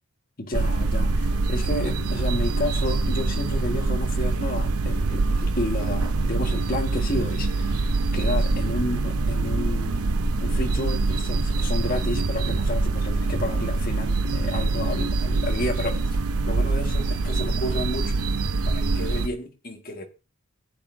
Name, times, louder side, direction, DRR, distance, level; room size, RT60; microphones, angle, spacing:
voice 1, 0.4-10.0 10.4-16.0 16.5-18.2 18.6-20.1, left 1 dB, 40° left, 1.5 m, -31 dB
sound 1, 0.5-19.3, right 3 dB, 85° right, 0.8 m, -24 dB
15.5 x 8.3 x 2.6 m
head